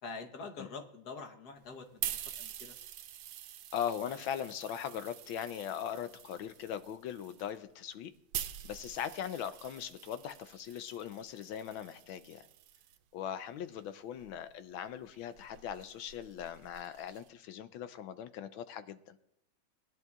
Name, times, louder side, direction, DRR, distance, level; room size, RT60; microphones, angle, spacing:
voice 1, 0.0-2.8, left 4 dB, 55° left, 5 dB, 1.4 m, -45 dB
sound 1, 1.6-13.0 13.8-17.3, right 11 dB, 85° right, 1.4 m, -46 dB
voice 2, 3.7-8.1 8.6-12.5 13.1-19.2, left 9 dB, 80° left, 12 dB, 1.4 m, -40 dB
20.0 x 10.5 x 2.4 m, 0.80 s
omnidirectional pair, 2.2 m